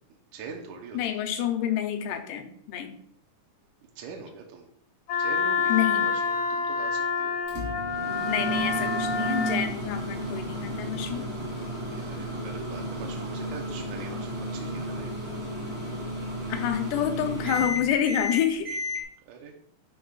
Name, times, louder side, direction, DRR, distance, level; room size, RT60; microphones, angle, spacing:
voice 1, 0.3-1.1 4.0-4.7 5.2-7.4 11.8-15.1 19.3-19.5, right 5 dB, 75° right, 1 dB, 2.2 m, -43 dB
voice 2, 0.9-2.9 5.7-6.1 8.3-11.2 16.5-18.8, left 9 dB, 80° left, 6 dB, 2.3 m, -28 dB
Wind instrument woodwind instrument, 5.1-9.6, left 5 dB, 50° left, 1.6 m, -27 dB
Microwave oven, 7.5-19.0, equal, 10° right, 2.0 m, -33 dB
11.0 x 5.3 x 2.4 m, 0.65 s
omnidirectional pair, 3.8 m